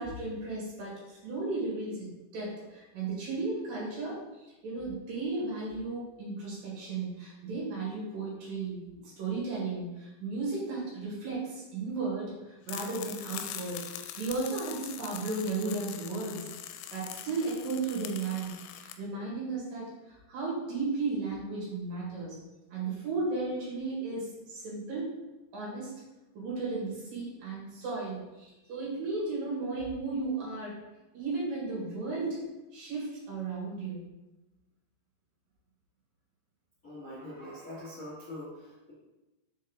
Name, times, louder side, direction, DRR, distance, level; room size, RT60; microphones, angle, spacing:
voice 1, 0.0-16.5 16.9-22.4 22.7-25.1 25.5-25.9 26.3-30.8 31.1-32.4 32.7-34.0, right 3 dB, 55° right, -5 dB, 3.1 m, -35 dB
sound 1, 12.7-19.0, left 10 dB, 90° left, 3.1 m, -42 dB
voice 2, 36.8-38.9, left 1 dB, 60° left, -11 dB, 0.8 m, -43 dB
6.9 x 4.5 x 3.8 m, 1.0 s
omnidirectional pair, 5.6 m